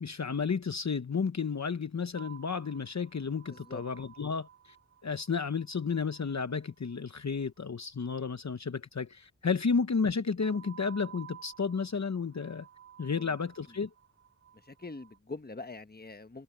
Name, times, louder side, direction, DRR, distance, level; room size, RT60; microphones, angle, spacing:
voice 1, 0.0-4.8 5.0-12.7 13.0-13.9, left 5 dB, 55° left, 0.9 m, -32 dB
sound 1, 2.1-7.5 10.4-15.2, right 10 dB, 45° right, 1.9 m, -54 dB
voice 2, 3.5-3.8 13.1-13.3 14.5-16.4, left 3 dB, 30° left, 1.2 m, -44 dB
wide cardioid pair, 50°, 32 cm